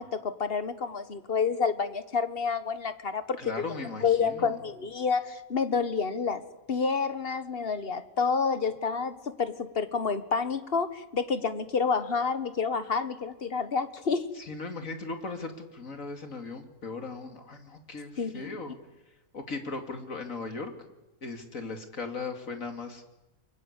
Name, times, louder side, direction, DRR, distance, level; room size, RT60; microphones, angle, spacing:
voice 1, 0.0-3.5 4.0-6.4 6.7-14.3 18.2-18.6, left 5 dB, 45° left, 12 dB, 1.6 m, -29 dB
voice 2, 3.4-4.6 14.4-18.7 19.3-20.7 21.2-23.0, left 3 dB, 75° left, 6 dB, 3.1 m, -38 dB
30.0 x 23.0 x 8.3 m, 0.98 s
omnidirectional pair, 1.4 m